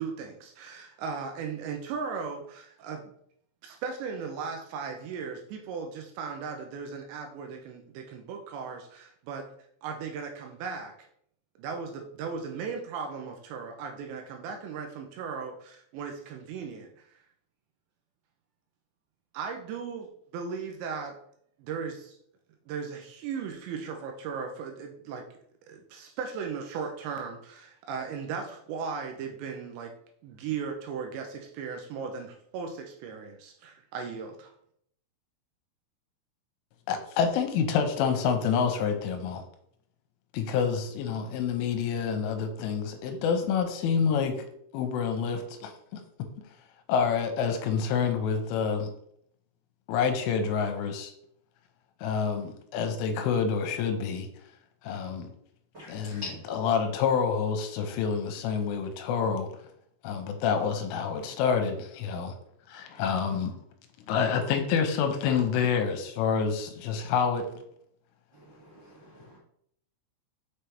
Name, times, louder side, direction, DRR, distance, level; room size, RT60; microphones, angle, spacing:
voice 1, 0.0-3.1 3.6-9.5 9.8-10.9 11.6-17.1 19.3-21.1 21.6-22.2 22.7-25.3 25.7-29.9 30.2-34.5, right 5 dB, 80° right, 4 dB, 2.6 m, -37 dB
voice 2, 36.9-39.4 40.3-44.5 44.7-46.0 46.9-48.9 49.9-51.1 52.0-54.3 54.8-55.3 55.9-59.5 60.0-62.4 62.7-63.5 64.1-67.5, left 6 dB, 85° left, 6 dB, 3.1 m, -28 dB
voice 3, 55.7-56.4 62.9-63.0 68.3-69.4, left 3 dB, 35° right, -8 dB, 1.8 m, -44 dB
6.7 x 5.8 x 3.3 m, 0.68 s
omnidirectional pair, 5.8 m